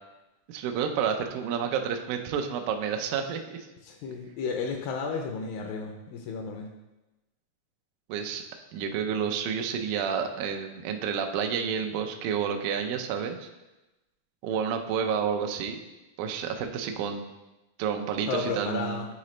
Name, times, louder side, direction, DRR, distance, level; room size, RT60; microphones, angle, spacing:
voice 1, 0.5-3.7 8.1-8.4 8.7-13.5 14.4-15.8 16.2-17.2 17.8-19.1, right 7 dB, 85° right, 4 dB, 1.7 m, -30 dB
voice 2, 3.8-6.7 18.3-19.1, left 5 dB, 80° left, 3 dB, 2.2 m, -33 dB
9.5 x 3.9 x 3.2 m, 1.0 s
omnidirectional pair, 4.2 m